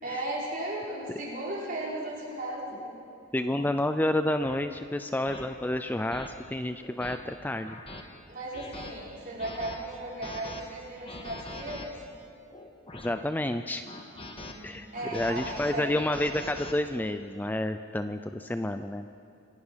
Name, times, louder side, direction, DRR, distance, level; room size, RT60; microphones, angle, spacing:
voice 1, 0.0-2.9 8.3-11.9 14.1-16.0, right 1 dB, 45° right, -6 dB, 5.4 m, -36 dB
sound 1, 2.7-2.9 3.5-3.7 4.4-4.6 5.3-5.4 6.1-6.3 6.8-7.2 7.7-8.0 8.5-8.9 9.4-9.8 10.2-10.6 11.1-11.9 12.5-13.2 13.9-14.5 14.9-16.7, left 2 dB, 25° left, 1.6 m, -42 dB
voice 2, 3.3-7.8 13.0-13.8 14.6-14.9 15.1-19.1, left 1 dB, 10° left, 9 dB, 0.4 m, -29 dB
26.5 x 17.0 x 5.7 m, 2.6 s
head